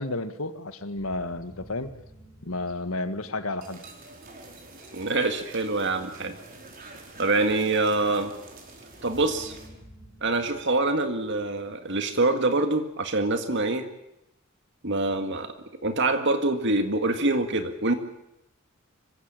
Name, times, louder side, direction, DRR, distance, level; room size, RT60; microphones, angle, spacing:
voice 1, 0.0-1.9 2.4-3.8, left 2 dB, 85° left, 11 dB, 1.8 m, -32 dB
sound 1, 0.9-3.9 8.9-12.1, right 1 dB, 15° right, 6.6 m, -51 dB
sound 2, 3.6-9.7, right 2 dB, 45° right, 5.1 m, -47 dB
voice 2, 4.9-6.4 7.2-8.3 9.0-9.5 10.2-13.9 14.8-15.5 15.8-17.9, right 2 dB, 60° right, 7 dB, 1.9 m, -25 dB
26.0 x 16.0 x 8.9 m, 0.86 s
head